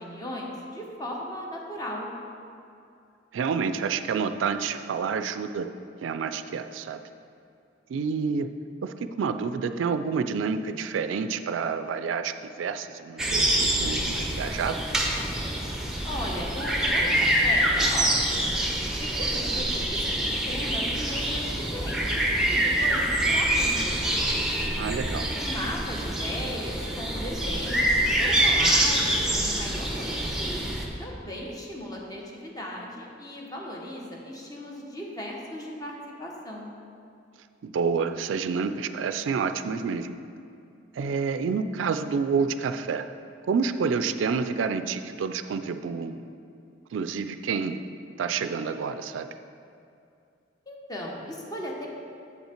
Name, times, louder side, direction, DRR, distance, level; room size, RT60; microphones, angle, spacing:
voice 1, 0.0-2.1 16.0-18.4 19.0-22.1 22.5-23.0 23.3-24.1 25.3-35.9 36.2-36.7 50.7-51.9, left 1 dB, 20° left, -2 dB, 1.0 m, -37 dB
voice 2, 3.3-5.7 6.0-7.0 7.9-8.5 8.8-14.8 24.8-25.3 37.6-40.2 40.9-43.1 43.4-46.2 46.9-47.8 48.2-49.3, right 5 dB, 90° right, 9 dB, 0.4 m, -28 dB
sound 1, 13.2-30.9, right 1 dB, 5° right, 0.8 m, -25 dB
8.1 x 5.6 x 4.4 m, 2.5 s
head